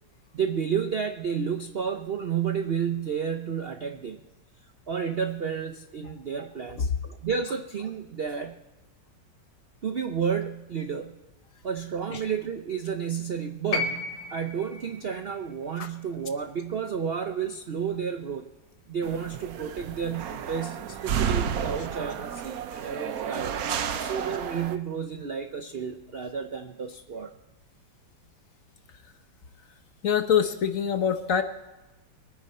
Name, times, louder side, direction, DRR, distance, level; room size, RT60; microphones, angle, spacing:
voice 1, 0.3-4.2 4.9-8.6 9.8-11.1 11.6-18.5 18.9-23.6 24.0-27.3, right 7 dB, 85° right, 7 dB, 0.5 m, -31 dB
sound 1, 13.7-17.9 19.1-19.2, left 3 dB, 70° left, 2.2 m, -35 dB
sound 2, 19.0-24.8, right 8 dB, 60° right, 1.0 m, -31 dB
voice 2, 30.0-31.4, left 8 dB, 55° left, 8 dB, 1.1 m, -25 dB
23.0 x 9.7 x 4.2 m, 1.1 s
omnidirectional pair, 2.1 m